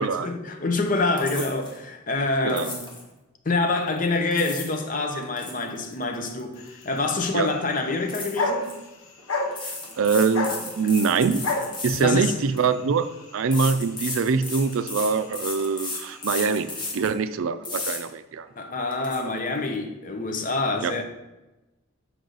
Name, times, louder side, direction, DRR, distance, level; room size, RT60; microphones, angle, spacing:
voice 1, 0.0-2.8 3.4-8.7 10.8-10.9 12.0-12.4 18.6-21.0, left 3 dB, 40° left, 0.7 m, -26 dB
sound 1, 1.2-1.8 2.5-3.0 4.1-4.8 5.1-7.0 7.2-7.5 8.1-8.7 9.5-12.7 13.5-17.1 17.6-18.0 18.5-18.6 18.9-19.2, left 3 dB, 20° left, 1.0 m, -34 dB
sound 2, 6.6-16.9, left 2 dB, 90° left, 0.9 m, -35 dB
voice 2, 9.6-11.5 11.8-18.5 20.8-20.9, right 5 dB, 75° right, 0.4 m, -24 dB
6.5 x 4.6 x 3.9 m
head